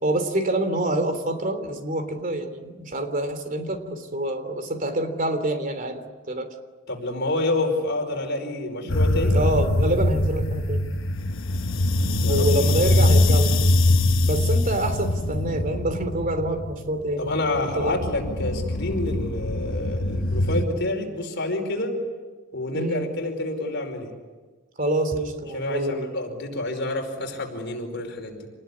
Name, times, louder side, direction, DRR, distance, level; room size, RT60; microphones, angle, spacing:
voice 1, 0.0-6.5 8.8-9.0 9.3-11.0 12.2-13.7 14.2-18.0 22.7-23.0 24.8-26.1, right 1 dB, 45° right, 8 dB, 3.2 m, -27 dB
voice 2, 6.9-9.4 12.2-12.5 17.2-22.0 22.5-24.1 25.5-28.5, left 2 dB, 60° left, 3 dB, 5.0 m, -28 dB
sound 1, 8.9-20.6, left 1 dB, 90° left, 1.2 m, -23 dB
27.5 x 20.0 x 9.8 m, 1.3 s
head